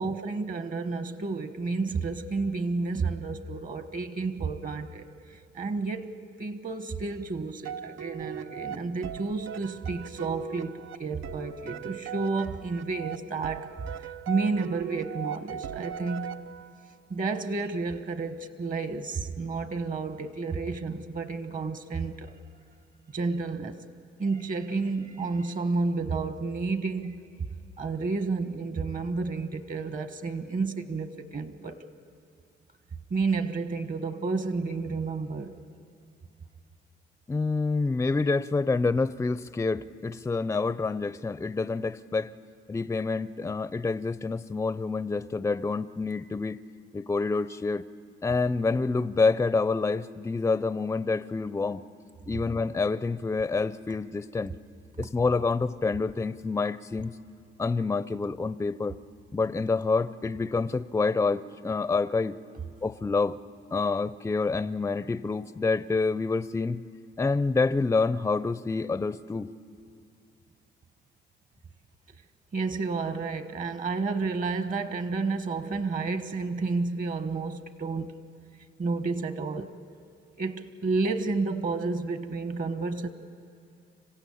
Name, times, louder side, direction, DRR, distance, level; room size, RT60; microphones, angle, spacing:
voice 1, 0.0-6.1 6.4-16.4 17.1-22.3 23.1-23.8 24.2-27.2 27.8-31.8 33.1-35.6 72.5-78.2 78.8-79.7 80.4-83.1, right 4 dB, 45° right, 10 dB, 1.3 m, -31 dB
sound 1, 7.6-16.9, right 9 dB, 80° right, 0.6 m, -39 dB
voice 2, 37.3-42.3 42.7-46.6 46.9-47.8 48.2-51.8 52.3-54.5 55.0-57.1 57.6-59.0 59.3-62.4 62.8-63.4 63.7-66.8 67.2-69.5, left 4 dB, 15° left, 15 dB, 0.5 m, -27 dB
26.0 x 16.0 x 8.6 m, 2.4 s
cardioid pair, 90°, 20 cm